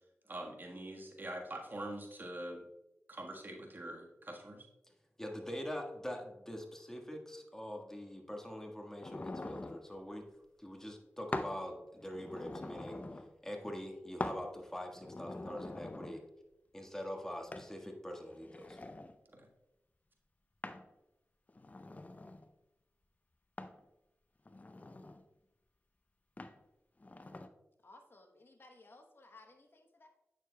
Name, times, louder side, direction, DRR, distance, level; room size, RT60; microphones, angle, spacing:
voice 1, 0.3-2.6 3.1-4.7 19.3-19.5, right 1 dB, 40° right, 1 dB, 1.4 m, -44 dB
voice 2, 5.2-10.3 10.6-13.0 13.4-16.2 16.7-18.8, equal, 10° left, 2 dB, 1.5 m, -44 dB
sound 1, 9.0-9.8 11.3-11.6 12.0-13.3 14.2-14.4 14.9-16.2 17.5-17.7 18.3-19.1 20.6-20.9 21.5-22.5 23.6-23.8 24.4-25.2 26.4-26.6 27.0-27.5, left 2 dB, 30° left, 0.6 m, -43 dB
voice 3, 27.8-30.1, left 2 dB, 50° left, 5 dB, 1.0 m, -59 dB
8.7 x 6.5 x 2.2 m, 0.92 s
cardioid pair, 45°, 5 cm